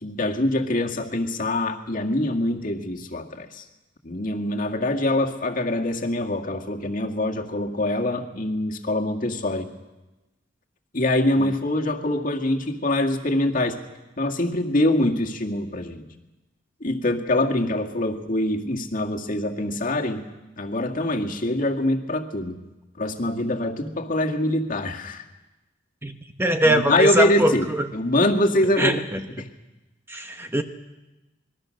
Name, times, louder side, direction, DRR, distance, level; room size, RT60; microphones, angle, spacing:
voice 1, 0.0-3.6 4.0-9.7 10.9-13.8 14.2-16.0 16.8-20.2 20.6-22.6 23.0-25.2 26.6-27.7 27.9-29.0 29.4-29.5, left 1 dB, 45° left, 2 dB, 2.0 m, -24 dB
voice 2, 26.0-27.5 28.8-29.2 30.1-30.6, right 1 dB, 10° right, 6 dB, 0.9 m, -22 dB
26.5 x 21.5 x 6.5 m, 1.1 s
head